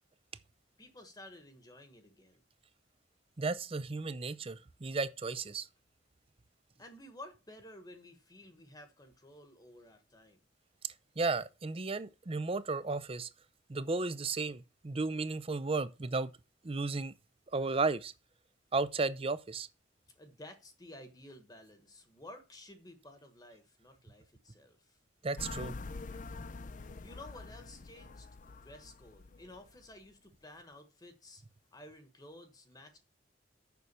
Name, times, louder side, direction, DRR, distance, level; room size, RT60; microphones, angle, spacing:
voice 1, 0.8-2.4 6.8-10.4 20.1-25.0 27.0-31.4 31.7-33.0, left 1 dB, 20° left, 1.2 m, -53 dB
voice 2, 3.4-5.7 11.2-13.3 13.7-16.3 16.6-17.1 17.5-18.1 18.7-19.7 25.2-25.7, right 3 dB, 30° right, 0.6 m, -34 dB
sound 1, 25.4-29.9, left 3 dB, 45° left, 0.5 m, -46 dB
7.0 x 6.1 x 6.7 m
head